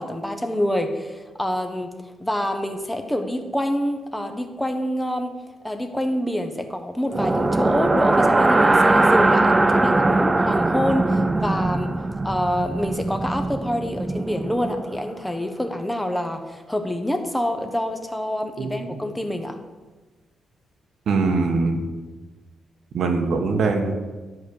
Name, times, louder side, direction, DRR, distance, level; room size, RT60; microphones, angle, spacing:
voice 1, 0.0-1.9 2.2-5.3 5.6-11.9 12.2-19.6, left 1 dB, 5° left, 5 dB, 0.8 m, -26 dB
sound 1, 7.1-15.1, right 2 dB, 15° right, 0.3 m, -20 dB
voice 2, 18.6-19.0 21.1-21.8 22.9-23.9, right 4 dB, 55° right, 3 dB, 1.1 m, -22 dB
11.0 x 5.0 x 6.9 m, 1.3 s
wide cardioid pair, 170°, 0 cm